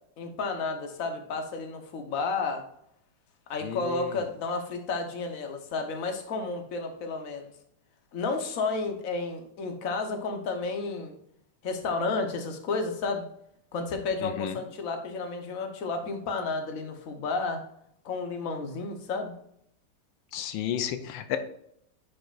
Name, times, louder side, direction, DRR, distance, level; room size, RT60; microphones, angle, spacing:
voice 1, 0.2-2.7 3.5-7.5 8.1-11.2 11.6-13.3 13.7-17.6 18.0-19.3, left 3 dB, 50° left, 5 dB, 1.4 m, -32 dB
voice 2, 3.6-4.1 14.2-14.6 20.3-21.4, left 10 dB, 90° left, 9 dB, 1.4 m, -32 dB
10.5 x 5.2 x 2.5 m, 0.72 s
omnidirectional pair, 2.0 m